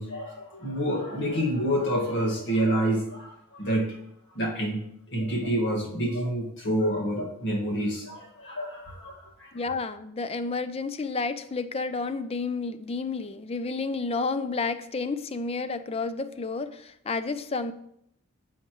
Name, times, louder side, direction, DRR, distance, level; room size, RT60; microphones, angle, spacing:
voice 1, 0.0-4.0 4.4-4.8 5.1-9.5, right 1 dB, 55° left, -1 dB, 1.9 m, -28 dB
voice 2, 9.5-17.7, left 4 dB, 25° left, 12 dB, 0.4 m, -31 dB
10.5 x 7.2 x 3.1 m, 0.72 s
head